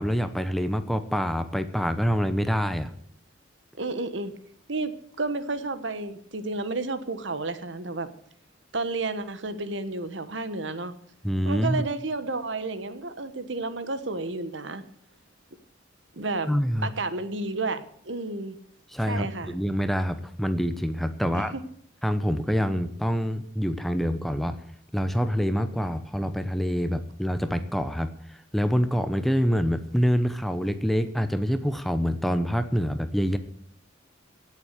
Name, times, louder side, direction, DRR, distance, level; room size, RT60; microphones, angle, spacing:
voice 1, 0.0-2.9 11.2-11.8 16.5-16.9 18.9-21.6 22.0-24.6 24.9-28.1 28.5-33.4, equal, ahead, 10 dB, 0.8 m, -26 dB
voice 2, 3.8-4.3 4.7-8.1 8.7-10.9 11.4-14.8 16.2-16.5 16.8-18.6 19.0-19.5 21.2-21.6, right 3 dB, 70° right, 12 dB, 1.3 m, -31 dB
16.5 x 7.3 x 8.2 m, 0.63 s
head